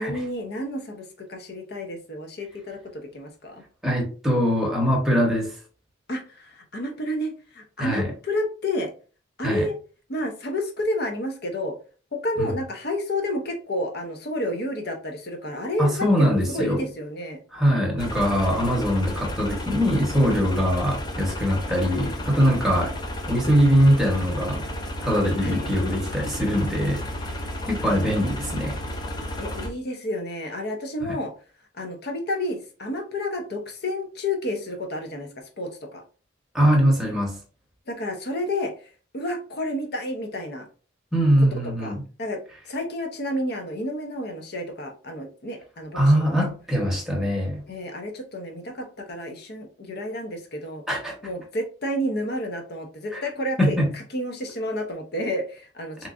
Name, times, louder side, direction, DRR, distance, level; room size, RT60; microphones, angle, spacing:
voice 1, 0.0-3.6 6.1-8.9 9.4-9.7 10.1-11.7 12.1-17.4 22.6-22.8 25.4-25.8 27.8-28.3 29.4-31.3 31.7-35.3 35.6-36.0 37.9-40.7 41.8-41.9 42.2-42.4 42.6-46.4 47.7-50.8 51.2-56.1, left 1 dB, 55° left, 0.7 m, -30 dB
voice 2, 3.8-5.5 7.8-8.1 9.4-9.7 12.4-12.5 15.8-16.8 17.5-22.9 23.3-24.7 25.0-27.1 27.7-28.8 31.0-31.2 36.5-37.4 41.1-42.0 45.9-47.6 50.9-51.1 53.1-53.2 53.6-53.9 56.0-56.1, equal, ahead, 0.9 m, -22 dB
sound 1, 18.0-29.7, left 1 dB, 20° left, 0.4 m, -32 dB
3.4 x 3.1 x 2.4 m
head